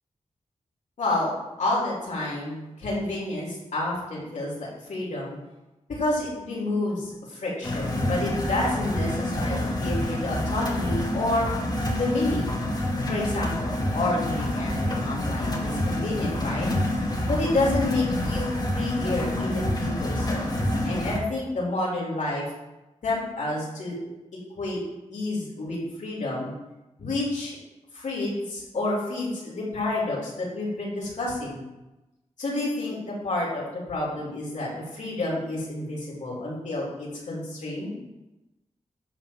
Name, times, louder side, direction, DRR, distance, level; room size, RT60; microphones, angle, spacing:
voice 1, 1.0-5.4 5.9-11.5 11.9-12.6 13.1-16.7 17.3-22.5 23.0-24.0 24.6-24.8 25.1-26.5 27.0-27.6 27.9-31.7 32.4-38.0, left 2 dB, 80° left, -5 dB, 3.8 m, -29 dB
sound 1, 7.6-21.2, left 1 dB, 35° left, 2.1 m, -27 dB
12.0 x 4.1 x 7.7 m, 1.0 s
wide cardioid pair, 85°, 12 cm